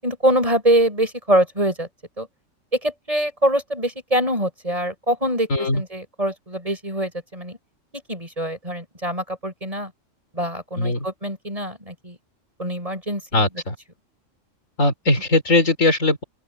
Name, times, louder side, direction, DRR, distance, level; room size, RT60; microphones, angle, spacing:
voice 1, 0.0-1.9 2.2-2.3 2.7-5.5 5.7-7.6 8.1-9.9 10.3-12.2 12.6-13.5, right 1 dB, 25° right, 8.2 m, -24 dB
voice 2, 5.5-5.8 10.8-11.1 13.3-13.8 14.8-16.2, left 2 dB, 80° left, 4.5 m, -20 dB
open air
omnidirectional pair, 1.3 m